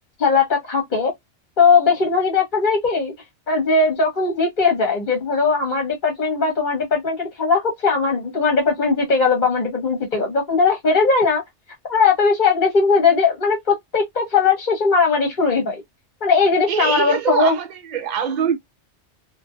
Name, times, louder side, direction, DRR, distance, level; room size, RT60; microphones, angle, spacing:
voice 1, 0.2-1.1 1.6-3.1 3.5-11.4 11.9-15.8 16.2-17.6, left 4 dB, 45° left, 0.9 m, -19 dB
voice 2, 16.7-18.6, right 8 dB, 50° right, 0.6 m, -23 dB
2.5 x 2.2 x 2.4 m
omnidirectional pair, 1.2 m